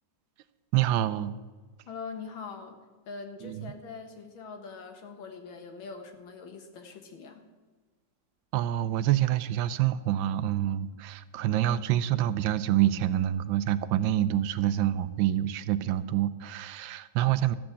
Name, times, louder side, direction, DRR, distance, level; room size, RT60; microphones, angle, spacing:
voice 1, 0.7-1.4 3.4-3.7 8.5-17.5, right 12 dB, 80° right, 14 dB, 1.3 m, -27 dB
voice 2, 1.9-2.8 3.1-7.4, left 5 dB, 80° left, 5 dB, 2.2 m, -42 dB
13.5 x 6.2 x 8.4 m, 1.3 s
omnidirectional pair, 2.1 m